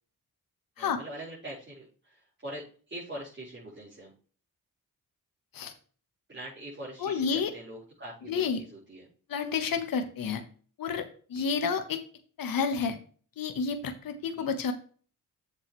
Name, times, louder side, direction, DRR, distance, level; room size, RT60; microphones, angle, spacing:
voice 1, 0.8-4.1 6.3-9.1 11.3-11.5 14.3-14.5, right 1 dB, 35° right, -9 dB, 4.5 m, -43 dB
voice 2, 7.0-7.5 8.3-8.6 9.3-10.4 10.8-12.0 12.4-13.0 13.4-14.7, left 5 dB, 75° left, 6 dB, 1.2 m, -30 dB
7.9 x 7.2 x 3.2 m, 0.41 s
cardioid pair, 80°, 35 cm